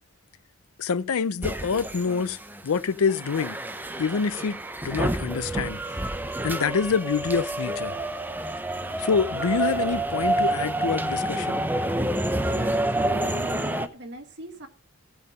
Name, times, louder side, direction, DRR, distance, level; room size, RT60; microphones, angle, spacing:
voice 1, 0.8-2.4 2.6-3.6 4.0-5.8 6.4-7.9 9.0-11.6, left 5 dB, 75° left, 0.5 m, -26 dB
sound 1, 1.4-2.8 3.1-13.9, right 1 dB, 10° right, 0.6 m, -28 dB
voice 2, 12.5-14.7, equal, 55° right, 1.8 m, -42 dB
15.0 x 5.6 x 5.4 m
head